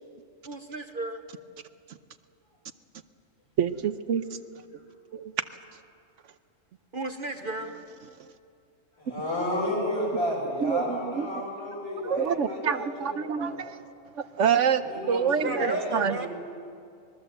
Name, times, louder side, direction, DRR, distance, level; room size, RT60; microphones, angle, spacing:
voice 1, 0.4-1.2 6.9-7.7 15.4-16.3, right 2 dB, 45° right, 6 dB, 1.1 m, -33 dB
voice 2, 3.6-4.4 5.1-5.4 10.6-11.5 12.0-13.8 14.1-16.2, right 7 dB, 70° right, 11 dB, 1.1 m, -27 dB
voice 3, 9.0-13.6 14.8-16.3, left 1 dB, 50° left, -3 dB, 7.3 m, -32 dB
25.0 x 21.0 x 7.7 m, 2.4 s
omnidirectional pair, 1.3 m